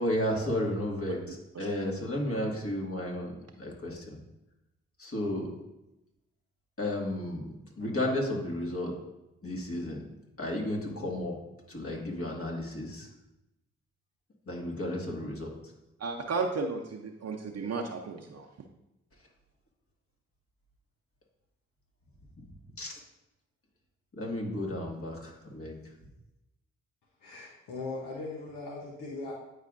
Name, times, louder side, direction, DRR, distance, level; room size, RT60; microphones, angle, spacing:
voice 1, 0.0-4.2 5.0-5.5 6.8-8.9 9.4-10.0 10.4-11.4 11.7-13.1 14.5-15.5 22.8-23.0 24.1-25.7, left 1 dB, 45° left, -1 dB, 1.8 m, -33 dB
voice 2, 16.0-18.5, right 4 dB, 55° right, 2 dB, 0.7 m, -34 dB
voice 3, 27.2-29.3, left 3 dB, 85° left, -3 dB, 0.9 m, -39 dB
9.1 x 4.9 x 2.5 m, 0.92 s
supercardioid pair, 40°, 31 cm